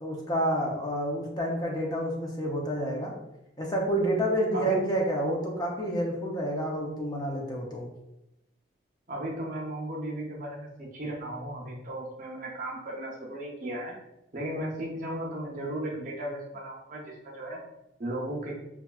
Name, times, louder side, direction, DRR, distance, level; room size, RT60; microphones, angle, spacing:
voice 1, 0.0-3.1 3.6-7.8, right 1 dB, 20° left, -1 dB, 0.6 m, -29 dB
voice 2, 4.5-4.9 9.1-13.9 14.3-17.6 18.0-18.6, right 1 dB, 45° right, -2 dB, 0.8 m, -35 dB
5.5 x 2.3 x 2.3 m, 0.89 s
head